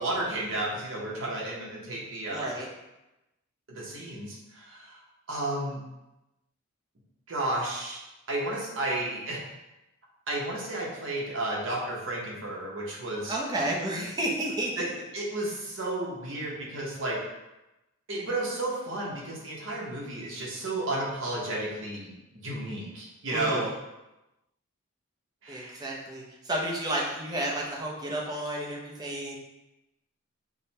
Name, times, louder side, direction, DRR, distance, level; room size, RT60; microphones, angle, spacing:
voice 1, 0.0-2.5 3.7-5.0 5.3-5.8 7.3-8.0 8.3-9.4 10.3-13.4 14.8-14.9 15.1-17.2 18.1-22.1 22.4-23.6 25.4-25.8, right 2 dB, 60° right, -4 dB, 0.9 m, -32 dB
voice 2, 2.3-2.7 13.3-14.8 23.3-23.7 25.5-29.4, right 1 dB, 20° right, -3 dB, 0.6 m, -31 dB
4.9 x 2.1 x 2.8 m, 0.98 s
head